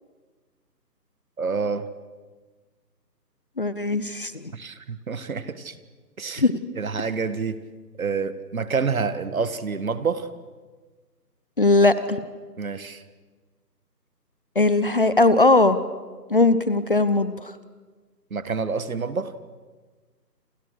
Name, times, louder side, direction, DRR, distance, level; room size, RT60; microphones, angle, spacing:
voice 1, 1.4-1.9 4.5-5.8 6.2-6.4 6.8-7.6 8.0-10.3 12.6-13.0 18.3-19.3, right 5 dB, 55° right, 13 dB, 1.8 m, -28 dB
voice 2, 3.6-4.5 6.4-6.6 11.6-12.2 14.6-15.8 16.3-17.5, left 2 dB, 35° left, 14 dB, 0.8 m, -19 dB
28.5 x 25.5 x 6.5 m, 1.4 s
figure-of-eight pair, 160°, 50 cm